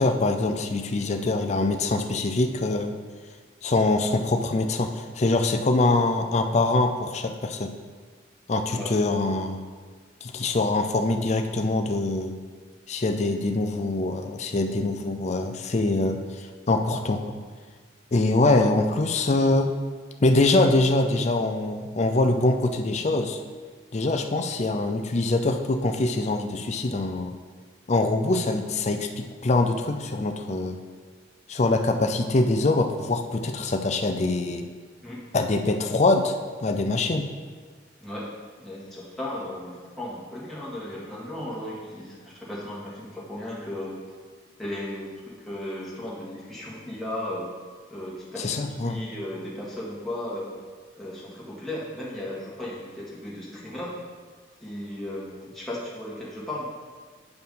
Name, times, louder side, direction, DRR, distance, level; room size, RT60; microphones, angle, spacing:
voice 1, 0.0-2.9 3.6-7.7 8.5-9.6 10.2-12.3 12.9-17.2 18.1-19.7 20.2-23.4 23.9-27.4 27.9-30.8 31.5-34.7 35.3-36.4 36.6-37.3 48.4-49.0, left 2 dB, 35° left, 5 dB, 0.5 m, -24 dB
voice 2, 38.6-44.0 44.6-47.5 47.9-50.5 50.9-53.9 54.6-56.6, left 1 dB, ahead, -7 dB, 1.5 m, -35 dB
7.9 x 4.5 x 5.3 m, 1.5 s
head